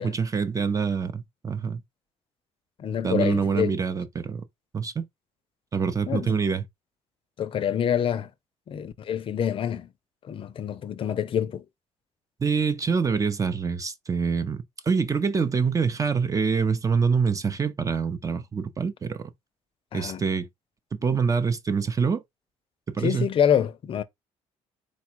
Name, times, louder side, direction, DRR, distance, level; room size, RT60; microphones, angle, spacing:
voice 1, 0.0-1.8 3.0-4.4 4.7-5.0 5.7-6.6 12.4-19.3 19.9-20.5 21.0-22.2 22.9-23.3, right 5 dB, 25° right, 0.7 m, -25 dB
voice 2, 2.8-3.8 6.1-6.3 7.4-8.3 8.7-9.9 10.3-11.6 19.9-20.2 23.0-24.0, left 9 dB, 45° left, 0.5 m, -26 dB
4.2 x 2.3 x 4.5 m
cardioid pair, 100°, 12 cm